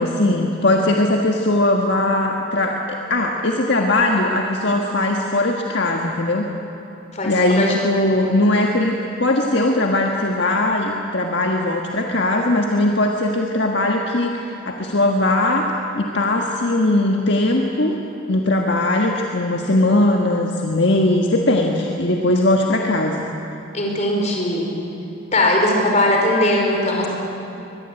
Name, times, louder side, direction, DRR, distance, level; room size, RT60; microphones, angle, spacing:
voice 1, 0.0-6.5 7.2-8.9 9.2-15.7 16.0-18.0 18.3-23.3, left 2 dB, 60° left, 1 dB, 1.7 m, -19 dB
voice 2, 7.1-7.8 23.7-24.7 25.3-27.1, left 1 dB, 35° left, 0 dB, 4.7 m, -19 dB
23.0 x 21.5 x 9.2 m, 3.0 s
head